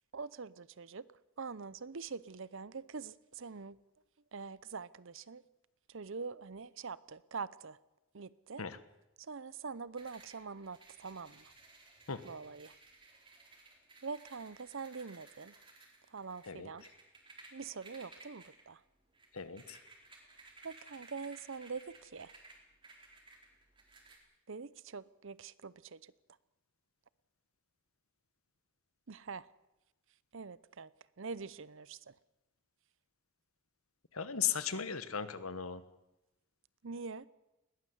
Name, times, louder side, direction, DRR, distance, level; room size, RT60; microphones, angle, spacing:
voice 1, 0.1-1.0 1.4-3.7 4.3-5.4 5.9-7.8 8.1-8.6 9.3-11.4 12.2-12.7 14.0-15.5 16.1-16.8 17.5-18.8 20.6-21.8 22.1-22.3 24.5-25.7 29.1-29.4 30.3-30.9 31.2-32.0 36.8-37.2, right 5 dB, 60° right, 0.7 m, -44 dB
sound 1, 10.0-24.2, right 3 dB, 25° right, 4.4 m, -58 dB
voice 2, 19.3-19.8 34.1-35.8, left 8 dB, 80° left, 1.5 m, -36 dB
21.0 x 18.0 x 8.0 m
head